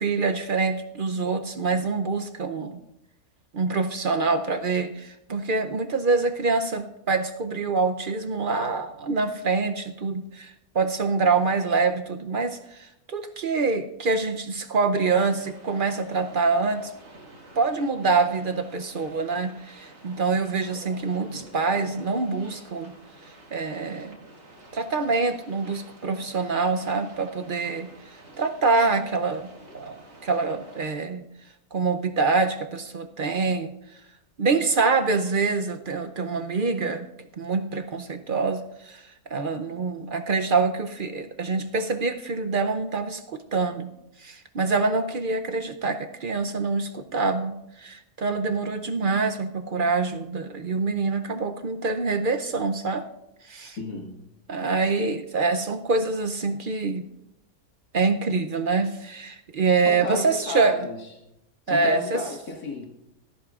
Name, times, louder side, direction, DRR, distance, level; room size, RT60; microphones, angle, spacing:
voice 1, 0.0-2.8 3.5-16.9 17.6-23.0 23.5-24.2 24.7-27.9 28.4-31.2 31.7-33.7 34.4-37.1 37.4-39.0 39.3-43.9 44.2-53.0 53.4-53.8 54.5-57.1 57.9-60.8 61.7-62.2, right 4 dB, 55° right, 7 dB, 0.6 m, -25 dB
sound 1, 15.4-30.9, right 2 dB, 80° right, 2.6 m, -49 dB
voice 2, 53.8-54.2 59.9-61.0 61.7-62.9, left 3 dB, 80° left, -1 dB, 2.4 m, -33 dB
18.0 x 14.0 x 2.4 m, 0.86 s
omnidirectional pair, 1.6 m